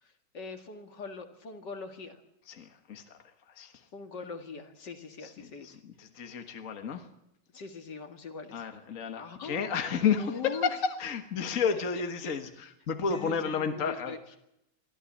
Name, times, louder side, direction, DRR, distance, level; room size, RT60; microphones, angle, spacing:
voice 1, 0.0-2.2 3.9-5.8 7.5-8.6 9.1-9.7 10.2-10.8 11.7-11.8 12.2-12.3 13.0-14.4, left 5 dB, 70° left, 6 dB, 2.7 m, -42 dB
voice 2, 2.5-3.2 3.6-3.7 5.2-5.7 6.0-7.1 8.5-14.2, left 6 dB, 50° left, 6 dB, 1.8 m, -31 dB
24.0 x 14.5 x 8.5 m, 0.82 s
omnidirectional pair, 1.9 m